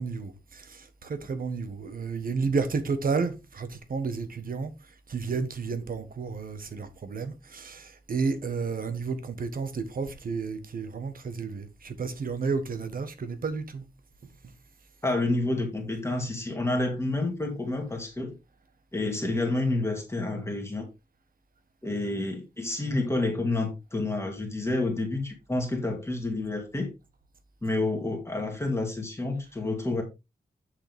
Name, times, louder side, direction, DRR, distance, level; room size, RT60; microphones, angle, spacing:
voice 1, 0.0-4.7 5.1-13.8, right 4 dB, 55° right, 1.3 m, -31 dB
voice 2, 15.0-18.4 18.9-20.9 21.8-26.9 27.6-30.0, left 2 dB, 15° left, 2.1 m, -29 dB
8.0 x 6.5 x 3.5 m
wide cardioid pair, 160°, 17 cm